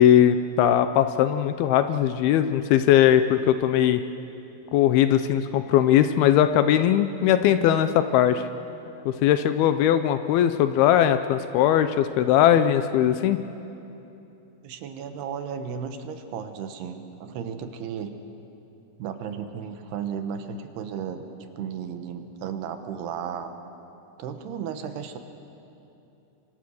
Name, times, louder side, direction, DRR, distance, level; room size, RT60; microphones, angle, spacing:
voice 1, 0.0-4.0 4.7-8.4 9.1-13.4, left 10 dB, 80° left, 10 dB, 2.3 m, -20 dB
voice 2, 14.6-18.1 19.0-21.3 21.6-23.5 24.2-25.2, right 7 dB, 75° right, 7 dB, 3.1 m, -34 dB
25.5 x 24.5 x 6.5 m, 2.8 s
omnidirectional pair, 5.0 m